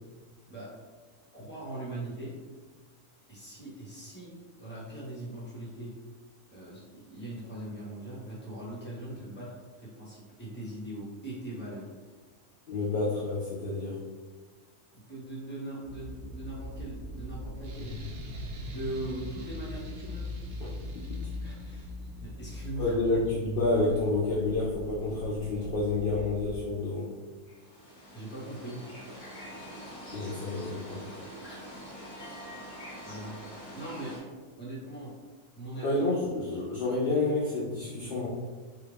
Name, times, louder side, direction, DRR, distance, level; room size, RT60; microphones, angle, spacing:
voice 1, 1.3-2.3 3.3-4.3 4.6-5.9 6.5-9.5 9.8-11.9 14.9-18.0 18.7-20.2 21.4-22.0 22.2-23.0 28.1-28.8 31.4-31.6 33.0-33.4 33.7-34.2 34.6-35.1 35.5-36.0, right 1 dB, 10° left, -8 dB, 1.0 m, -40 dB
voice 2, 12.7-14.0 22.8-27.1 30.1-31.0 35.8-38.3, left 2 dB, 60° left, -8 dB, 0.5 m, -29 dB
sound 1, 15.8-26.6, left 1 dB, 80° left, 1.1 m, -41 dB
sound 2, 17.6-22.1, left 2 dB, 90° right, 1.3 m, -45 dB
sound 3, 27.4-34.2, equal, 40° left, 1.0 m, -45 dB
3.5 x 2.4 x 3.4 m, 1.4 s
omnidirectional pair, 1.6 m